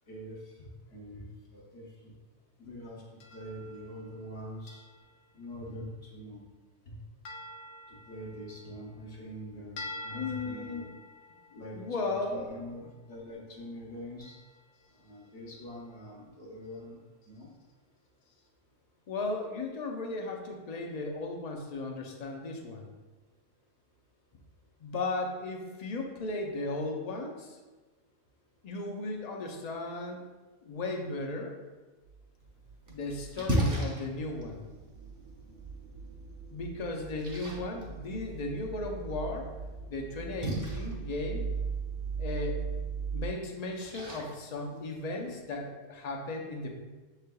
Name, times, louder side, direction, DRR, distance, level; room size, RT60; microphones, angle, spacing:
voice 1, 0.1-2.1 2.6-3.0 3.3-4.8 5.3-6.4 6.9-7.0 7.9-10.9 11.5-14.4 15.0-17.0 17.2-17.5, equal, 65° left, -3 dB, 1.2 m, -44 dB
sound 1, 3.2-4.3 4.7-5.3 7.3-9.4 9.8-12.9 14.2-15.3 15.6-16.1 16.6-16.8 17.2-17.4 18.3-18.4, left 1 dB, 85° left, 0.9 m, -48 dB
voice 2, 10.1-10.9 11.7-12.7 19.1-22.9 24.8-27.6 28.6-30.2 30.6-31.5 32.9-34.6 36.5-39.5 39.9-41.4 42.2-42.6 43.1-46.7, left 2 dB, 45° left, 2 dB, 0.6 m, -36 dB
sound 2, 32.0-43.3, right 6 dB, 60° right, 0.7 m, -40 dB
Splash splatter, 32.4-45.4, right 1 dB, 20° right, 0.5 m, -39 dB
6.4 x 3.3 x 2.2 m, 1.2 s
omnidirectional pair, 1.1 m